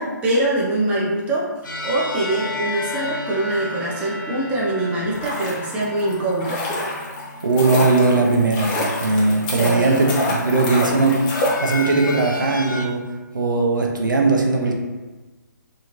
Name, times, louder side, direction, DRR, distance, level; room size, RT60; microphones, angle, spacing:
voice 1, 0.0-1.5 1.8-6.7 9.6-10.0, right 1 dB, 10° right, -5 dB, 0.5 m, -23 dB
sound 1, 1.6-12.9, left 2 dB, 80° left, 0.5 m, -33 dB
sound 2, 5.0-12.2 12.4-12.5, left 1 dB, 25° left, 0.7 m, -27 dB
voice 2, 7.4-11.2 11.6-13.1 13.3-14.7, right 3 dB, 80° right, 1 dB, 0.5 m, -19 dB
2.7 x 2.5 x 2.9 m, 1.2 s
figure-of-eight pair, 135°, 10 cm